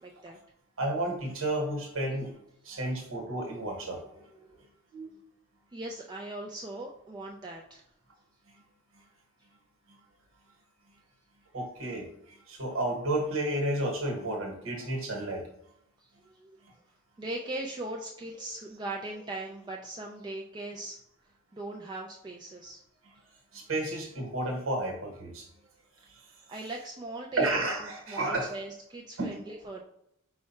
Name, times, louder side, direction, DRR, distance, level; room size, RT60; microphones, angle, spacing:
voice 1, 0.0-0.4 5.7-7.8 16.2-16.6 17.2-21.0 21.5-22.8 25.6-25.7 26.5-27.6 28.1-29.8, right 2 dB, 20° right, -1 dB, 0.3 m, -39 dB
voice 2, 0.8-4.4 4.9-5.2 11.5-15.5 16.6-16.7 23.5-25.5 27.4-28.5 29.2-29.4, right 1 dB, 70° right, 2 dB, 1.1 m, -32 dB
4.7 x 2.2 x 4.1 m, 0.76 s
head